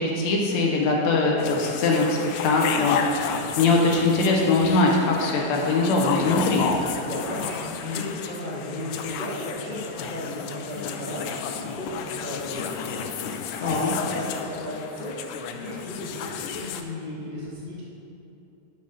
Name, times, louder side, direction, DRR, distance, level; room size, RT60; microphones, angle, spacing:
voice 1, 0.0-2.2 2.4-6.7 13.6-13.9, left 3 dB, 70° left, -1 dB, 1.9 m, -22 dB
sound 1, 1.4-16.8, left 6 dB, 90° left, 2.2 m, -32 dB
voice 2, 7.0-9.8 10.1-12.8 13.6-15.2 15.5-17.8, left 1 dB, 55° left, -9 dB, 0.5 m, -34 dB
7.4 x 5.4 x 6.4 m, 2.8 s
omnidirectional pair, 3.7 m